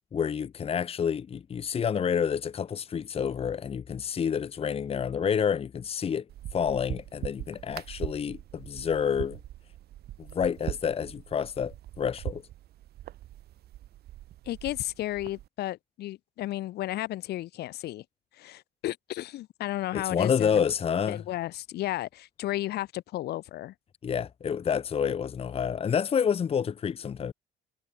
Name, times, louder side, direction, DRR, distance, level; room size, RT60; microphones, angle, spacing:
voice 1, 0.1-6.2 6.5-9.4 10.2-12.4 19.9-21.2 24.0-27.3, left 7 dB, 35° left, 1.1 m, -28 dB
sound 1, 6.3-15.5, right 14 dB, 70° right, 4.6 m, -41 dB
voice 2, 14.5-18.0 18.4-20.6 21.1-23.7, left 15 dB, 75° left, 2.4 m, -33 dB
cardioid pair, 110°, 17 cm